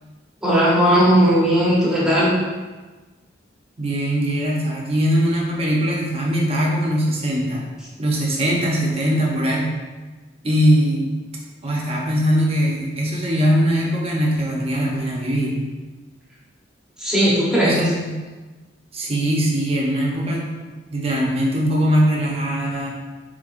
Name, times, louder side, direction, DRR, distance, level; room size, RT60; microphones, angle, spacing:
voice 1, 0.4-2.3 17.0-17.8, equal, 5° right, -8 dB, 1.1 m, -17 dB
voice 2, 3.8-7.6 8.0-9.7 10.4-11.1 11.6-15.6 17.6-18.1 18.9-20.5 20.9-22.9, equal, 35° right, -3 dB, 0.9 m, -21 dB
5.1 x 3.7 x 2.6 m, 1.3 s
head